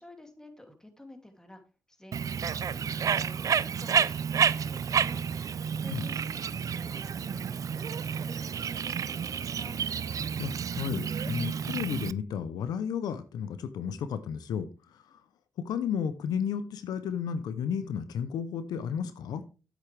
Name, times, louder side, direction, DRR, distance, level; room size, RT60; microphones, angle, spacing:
voice 1, 0.0-1.6 1.9-5.2 5.8-9.8, left 1 dB, 10° left, 2.7 m, -50 dB
Bird, 2.1-12.1, right 7 dB, 55° right, 0.4 m, -30 dB
voice 2, 10.4-15.2 15.6-19.4, left 7 dB, 80° left, 0.7 m, -33 dB
10.0 x 8.3 x 3.4 m
supercardioid pair, 50°, 7 cm